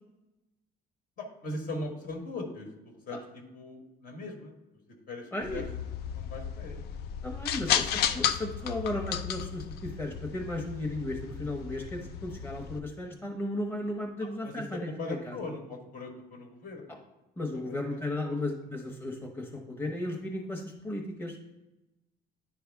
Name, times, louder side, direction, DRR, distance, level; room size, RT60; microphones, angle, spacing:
voice 1, 1.2-4.5 4.9-5.6 6.1-6.8 7.4-8.3 14.2-17.0 17.5-18.0 18.2-18.4, left 2 dB, 55° left, 2 dB, 1.5 m, -40 dB
voice 2, 5.3-5.7 7.2-15.4 17.4-21.4, left 1 dB, 15° left, 0 dB, 1.0 m, -35 dB
sound 1, 5.4-12.8, left 9 dB, 75° left, 0.5 m, -33 dB
10.0 x 3.4 x 3.5 m, 0.98 s
cardioid pair, 110°, 17 cm